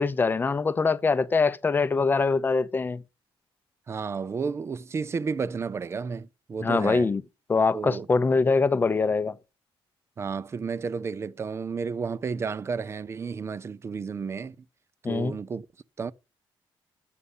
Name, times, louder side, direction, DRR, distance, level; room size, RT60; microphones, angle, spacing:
voice 1, 0.0-3.0 6.6-7.2 7.5-9.3 15.0-15.3, left 4 dB, 20° left, 0.7 m, -23 dB
voice 2, 3.9-7.1 7.7-8.1 10.2-14.6 15.1-15.7 16.0-16.1, right 5 dB, 30° right, 0.6 m, -32 dB
12.5 x 8.2 x 5.5 m
cardioid pair, 165°, 10 cm